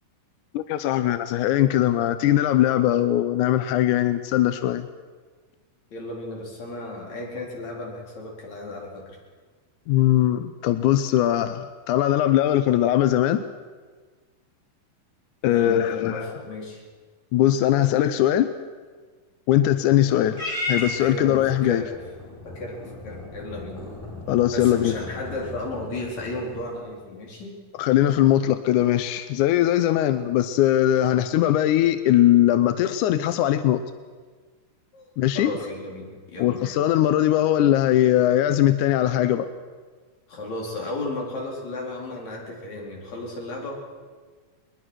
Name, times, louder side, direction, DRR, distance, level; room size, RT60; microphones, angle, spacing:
voice 1, 0.5-4.9 9.9-13.4 15.4-16.3 17.3-18.5 19.5-21.8 24.3-24.9 27.8-33.8 35.2-35.5 36.4-39.5, left 12 dB, 75° left, 11 dB, 1.9 m, -20 dB
voice 2, 5.9-9.2 15.4-16.8 21.0-22.0 22.4-23.9 24.5-27.6 34.9-36.7 40.3-43.7, left 2 dB, 50° left, -2 dB, 5.4 m, -34 dB
Purr / Meow, 20.3-26.8, left 2 dB, 15° left, 6.4 m, -35 dB
21.5 x 21.5 x 6.3 m, 1.5 s
omnidirectional pair, 4.1 m